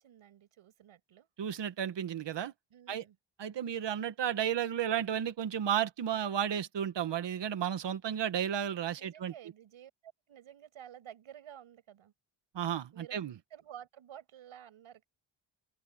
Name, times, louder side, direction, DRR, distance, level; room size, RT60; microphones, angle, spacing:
voice 1, 0.0-1.3 2.7-3.2 8.9-12.1 12.9-13.2 13.5-15.1, right 10 dB, 85° right, 6.7 m, -52 dB
voice 2, 1.4-2.5 2.9-3.0 3.4-9.3 12.6-13.3, right 9 dB, 60° right, 1.6 m, -33 dB
open air
cardioid pair, 120°, 48 cm